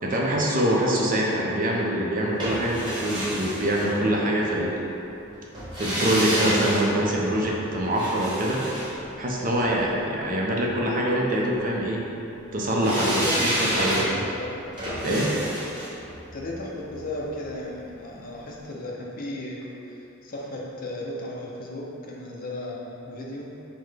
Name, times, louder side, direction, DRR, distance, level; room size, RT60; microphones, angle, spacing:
voice 1, 0.0-4.7 5.8-8.6 9.2-12.0 12.5-14.0 15.0-15.3, right 1 dB, 40° right, -3 dB, 0.5 m, -24 dB
sound 1, 2.4-4.5 5.5-9.8 12.8-17.8 18.1-18.2, equal, 20° right, 1.0 m, -30 dB
voice 2, 12.8-14.6 16.3-23.5, left 1 dB, 45° left, -3 dB, 0.5 m, -35 dB
5.7 x 2.1 x 3.2 m, 3.0 s
head